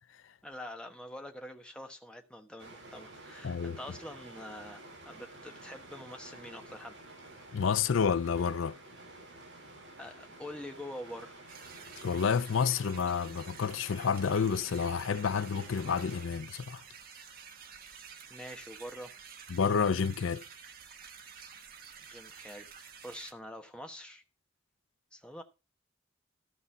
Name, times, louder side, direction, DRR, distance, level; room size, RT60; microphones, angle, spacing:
voice 1, 0.4-7.0 10.0-11.4 18.3-19.1 22.0-24.2 25.1-25.4, left 1 dB, 5° left, 1.2 m, -45 dB
sound 1, 2.6-16.3, right 2 dB, 65° right, 7.4 m, -51 dB
voice 2, 3.4-3.8 7.5-8.8 12.0-16.8 19.5-20.4, left 6 dB, 80° left, 0.5 m, -29 dB
sound 2, 11.5-23.3, right 6 dB, 45° right, 1.4 m, -50 dB
14.0 x 5.5 x 5.6 m
head